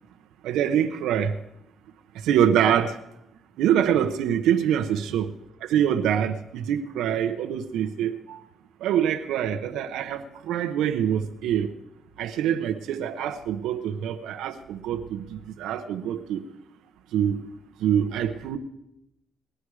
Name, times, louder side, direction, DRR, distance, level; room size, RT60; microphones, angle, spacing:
voice 1, 0.4-1.3 2.2-3.0 3.6-5.3 5.6-8.4 8.8-11.7 12.2-16.4 17.1-17.4 17.8-18.6, right 9 dB, 85° right, 8 dB, 0.9 m, -25 dB
20.0 x 11.0 x 4.9 m, 0.84 s
cardioid pair, 90°, 0 cm